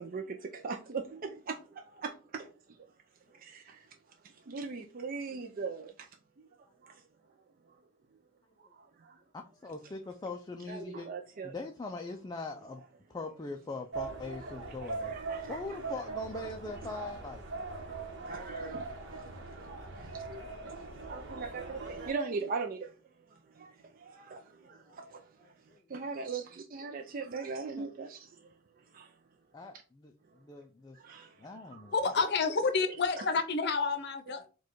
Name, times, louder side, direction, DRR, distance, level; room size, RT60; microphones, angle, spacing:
voice 1, 0.0-2.8 3.3-3.9 4.2-6.1 6.6-7.0 7.7-7.8 8.6-9.2 10.7-11.5 14.8-15.8 18.2-22.9 23.3-25.5 25.9-28.5 28.9-29.1 30.9-31.9, right 4 dB, 45° right, 0.5 m, -41 dB
voice 2, 9.3-11.1 11.4-12.8 13.1-15.1 15.5-17.7 24.6-25.0 25.4-25.8 27.8-27.9 29.5-31.0 31.4-31.9, left 3 dB, 20° left, 0.3 m, -42 dB
sound 1, 13.9-22.1, right 3 dB, 60° right, 1.0 m, -41 dB
voice 3, 31.9-34.5, left 4 dB, 55° left, 0.6 m, -29 dB
4.7 x 2.3 x 4.4 m
head